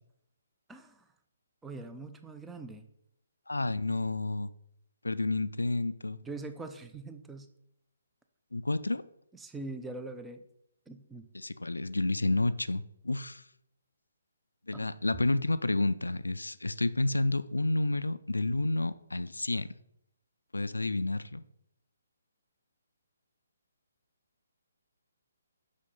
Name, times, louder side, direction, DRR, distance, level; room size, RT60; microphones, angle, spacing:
voice 1, 1.6-2.8 6.2-7.5 9.3-10.4 10.9-11.3 14.7-14.9, right 2 dB, 10° right, 0.6 m, -42 dB
voice 2, 3.5-4.5 5.0-6.2 8.5-9.0 11.3-13.4 14.7-19.7 20.5-21.4, left 2 dB, 80° left, 0.4 m, -30 dB
6.4 x 5.7 x 5.4 m
figure-of-eight pair, 140°, 0 cm